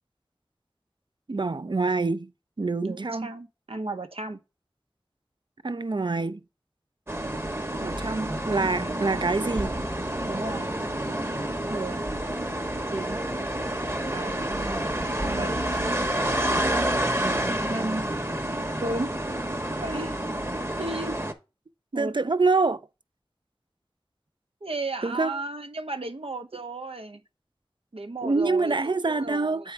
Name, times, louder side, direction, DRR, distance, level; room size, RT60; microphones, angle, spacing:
voice 1, 1.3-2.3 2.6-3.3 5.6-6.4 7.8-9.8 14.3-14.9 15.2-16.2 16.6-17.7 22.0-22.8 25.0-25.4 28.2-29.7, right 3 dB, 55° right, 0.5 m, -27 dB
voice 2, 2.8-4.4 10.2-10.7 11.7-12.0 12.9-13.2 14.1-14.4 15.3-15.6 16.4-16.8 17.7-18.0 18.8-19.1 19.8-20.2 20.8-21.2 21.9-22.1 24.6-27.2 27.9-29.7, right 2 dB, 85° right, 0.9 m, -34 dB
sound 1, 7.1-21.3, right 1 dB, 25° right, 1.1 m, -29 dB
7.9 x 4.7 x 3.3 m
wide cardioid pair, 40°, 10 cm